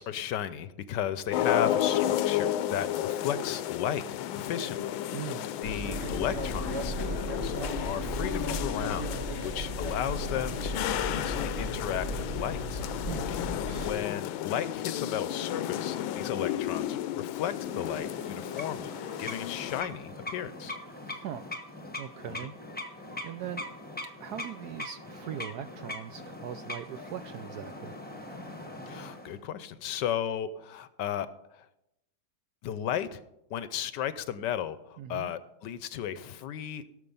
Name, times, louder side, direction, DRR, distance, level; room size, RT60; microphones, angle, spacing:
voice 1, 0.0-4.9 5.3-7.5 7.8-9.1 9.4-12.8 13.3-13.6 13.8-18.9 19.2-20.8 22.3-22.5 28.9-31.7 32.6-33.2 33.5-36.9, left 9 dB, 70° left, 14 dB, 1.2 m, -34 dB
sound 1, 1.3-19.8, left 11 dB, 90° left, 1.4 m, -33 dB
voice 2, 5.1-5.5 13.0-13.3 21.0-21.4 22.0-22.5 23.2-23.7 24.2-27.9 35.0-35.3, right 10 dB, 75° right, 10 dB, 0.9 m, -40 dB
Sounds at the office, 5.6-13.9, right 1 dB, 40° right, 1.3 m, -36 dB
sound 2, 17.6-29.4, left 1 dB, 5° left, 0.9 m, -41 dB
17.0 x 6.6 x 5.4 m, 0.86 s
omnidirectional pair, 2.1 m